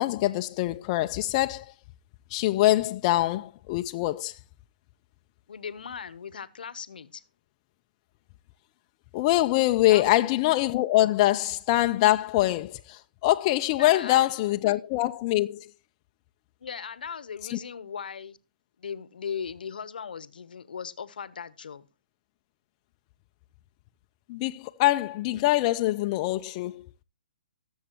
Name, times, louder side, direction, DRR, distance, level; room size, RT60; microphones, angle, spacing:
voice 1, 0.0-1.7 2.3-4.4 9.1-15.7 17.5-17.6 24.3-26.9, left 16 dB, 35° left, 0.5 m, -24 dB
voice 2, 5.5-7.2 9.9-10.1 13.8-14.2 16.6-18.4 18.8-21.9, left 7 dB, 70° left, 0.9 m, -38 dB
18.5 x 7.3 x 2.9 m
hypercardioid pair, 140°, 5 cm